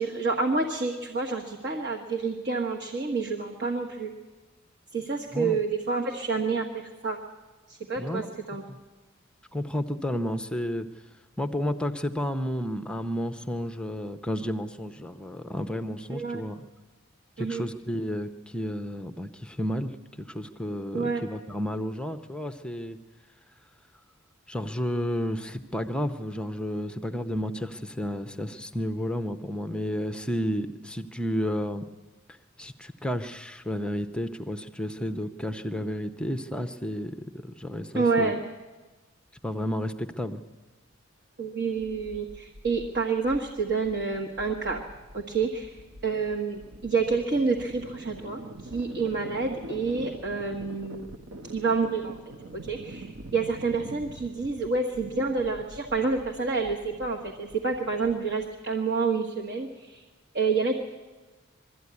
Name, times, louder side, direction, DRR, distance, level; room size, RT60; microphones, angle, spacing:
voice 1, 0.0-4.1 4.9-7.2 7.7-8.6 16.1-16.4 17.4-17.7 20.9-21.3 37.9-38.4 41.4-44.8 45.1-51.1 51.5-52.2 52.5-60.0 60.3-60.7, right 4 dB, 55° right, 1 dB, 1.5 m, -28 dB
voice 2, 8.0-8.3 8.7-8.8 9.5-10.9 11.4-16.6 17.4-23.0 24.5-31.8 32.3-38.3 39.4-40.4, equal, 5° left, 8 dB, 0.6 m, -32 dB
sound 1, 41.7-58.8, right 2 dB, 75° right, 1.0 m, -45 dB
21.5 x 13.5 x 9.6 m, 1.3 s
head